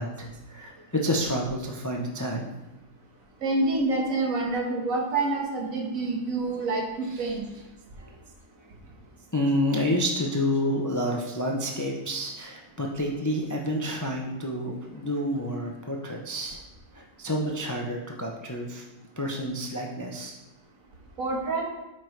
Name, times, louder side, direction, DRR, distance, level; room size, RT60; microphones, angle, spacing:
voice 1, 0.0-2.5 9.3-16.6 16.9-18.8 19.2-20.3, equal, 30° left, 0 dB, 0.3 m, -29 dB
voice 2, 3.4-7.4 21.2-21.6, right 2 dB, 90° right, 0 dB, 1.6 m, -27 dB
8.5 x 4.8 x 3.2 m, 1.0 s
omnidirectional pair, 1.4 m